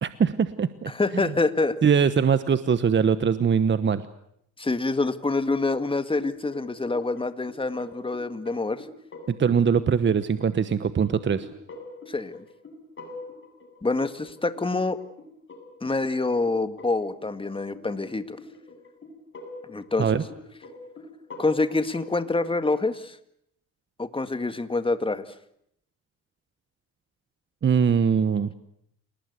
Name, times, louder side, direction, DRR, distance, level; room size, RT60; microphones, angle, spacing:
voice 1, 0.0-0.9 1.8-4.0 9.3-11.5 20.0-20.2 27.6-28.5, right 6 dB, 40° right, 13 dB, 1.1 m, -22 dB
voice 2, 0.9-1.8 4.6-8.9 12.1-12.4 13.8-15.0 15.8-18.4 19.7-20.1 21.4-23.2 24.0-25.3, left 3 dB, 15° left, 11 dB, 1.9 m, -26 dB
sound 1, 6.2-22.6, left 2 dB, 40° left, 7.9 m, -45 dB
29.0 x 19.5 x 8.2 m, 0.74 s
cardioid pair, 90°, 30 cm